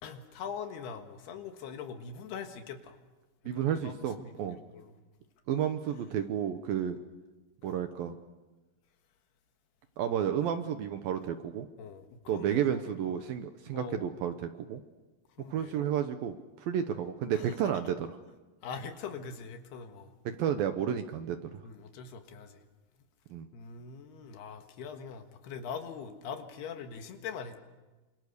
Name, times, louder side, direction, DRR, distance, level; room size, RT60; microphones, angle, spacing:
voice 1, 0.0-3.0 3.5-5.0 11.8-13.2 13.7-14.1 15.4-15.9 17.3-17.8 18.6-20.1 21.6-22.6 23.5-27.6, left 6 dB, 70° left, 6 dB, 3.4 m, -43 dB
voice 2, 3.5-4.6 5.5-7.0 7.6-8.2 10.0-11.7 12.3-14.8 15.5-18.1 20.3-21.6 23.3-23.5, right 9 dB, 70° right, 8 dB, 2.3 m, -31 dB
28.0 x 26.5 x 6.7 m, 1.2 s
omnidirectional pair, 5.1 m